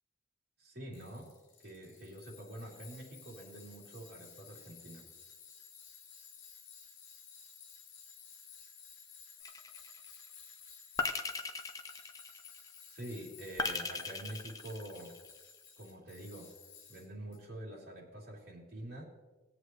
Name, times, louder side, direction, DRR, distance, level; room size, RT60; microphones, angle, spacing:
voice 1, 0.6-1.3 1.6-5.1 12.9-15.1 15.8-16.5 16.9-19.0, right 1 dB, 55° right, -3 dB, 3.4 m, -46 dB
Tools, 0.9-17.4, left 7 dB, 75° left, 1.5 m, -55 dB
sound 1, 9.4-10.1 11.0-12.7 13.6-15.4, left 3 dB, 20° left, 0.6 m, -38 dB
19.0 x 7.9 x 3.2 m, 1.1 s
head